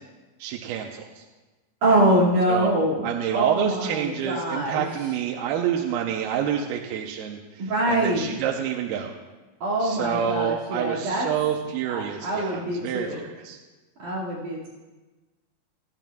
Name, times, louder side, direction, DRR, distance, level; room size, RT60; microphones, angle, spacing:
voice 1, 0.4-1.2 2.5-2.7 3.0-9.1 9.8-13.6, right 9 dB, 80° right, 1 dB, 2.6 m, -28 dB
voice 2, 1.8-3.1 3.3-4.8 7.6-8.3 9.6-11.3 11.9-13.2 14.0-14.7, right 1 dB, 55° right, -7 dB, 3.6 m, -24 dB
27.0 x 9.1 x 2.3 m, 1.2 s
omnidirectional pair, 4.4 m